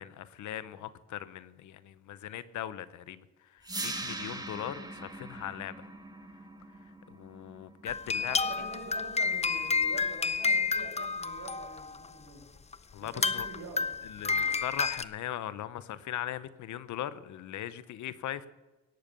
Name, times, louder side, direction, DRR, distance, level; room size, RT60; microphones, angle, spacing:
voice 1, 0.0-3.2 3.5-5.7 7.1-8.4 12.9-13.5 14.1-18.5, left 12 dB, 75° left, 15 dB, 0.8 m, -39 dB
sound 1, 3.6-9.7, right 2 dB, 15° right, 1.5 m, -42 dB
sound 2, 7.9-12.1 12.7-12.8 13.1-15.0, left 4 dB, 20° left, 0.6 m, -30 dB
voice 2, 8.3-12.4 13.0-13.9 14.1-14.6, right 3 dB, 60° right, -1 dB, 5.9 m, -46 dB
18.0 x 6.9 x 6.7 m, 1.1 s
cardioid pair, 90°, 30 cm